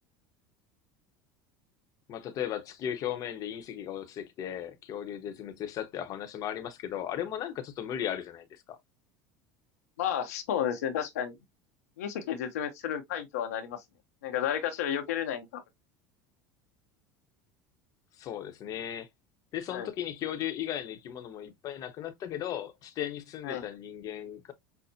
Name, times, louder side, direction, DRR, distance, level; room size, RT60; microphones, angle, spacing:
voice 1, 2.1-8.8 18.2-19.1 19.5-24.5, left 10 dB, 50° left, 0.8 m, -36 dB
voice 2, 10.0-11.4 12.0-13.8 14.2-15.6 19.7-19.9 23.4-23.6, left 9 dB, 85° left, 0.7 m, -32 dB
5.6 x 2.1 x 2.6 m
supercardioid pair, 95°, 8 cm